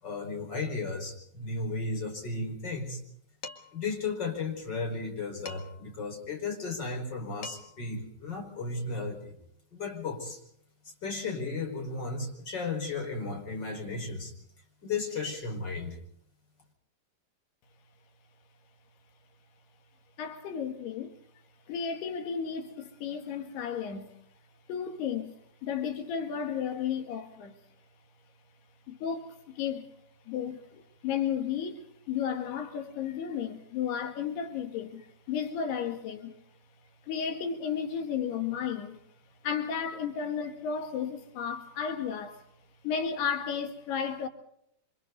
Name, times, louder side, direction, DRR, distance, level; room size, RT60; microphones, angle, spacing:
voice 1, 0.0-3.0 3.7-9.4 9.7-10.4 10.8-14.3 14.8-16.0, left 3 dB, 25° left, 5.5 m, -34 dB
Dishes pots and pans, 3.4-3.9 5.5-5.9 7.1-7.2 7.4-7.9, left 4 dB, 45° left, 2.2 m, -43 dB
voice 2, 20.2-21.2 21.7-24.1 24.7-25.4 25.6-27.6 28.9-29.9 30.3-36.3 37.0-39.0 39.4-42.4 42.8-44.3, left 7 dB, 85° left, 3.8 m, -33 dB
28.5 x 25.5 x 4.0 m
omnidirectional pair, 4.6 m